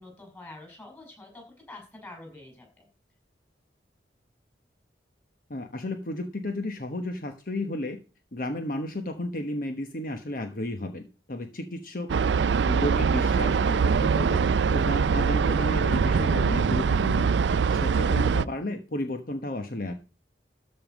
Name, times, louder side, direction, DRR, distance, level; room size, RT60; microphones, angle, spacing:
voice 1, 0.0-2.9, left 2 dB, 10° left, 2 dB, 5.7 m, -46 dB
voice 2, 5.5-8.0 8.3-12.1 12.6-14.4 14.7-17.3 17.7-19.9, left 1 dB, 50° left, 6 dB, 1.2 m, -33 dB
sound 1, 12.1-18.5, right 5 dB, 85° right, 0.4 m, -23 dB
13.5 x 5.4 x 5.2 m, 0.34 s
head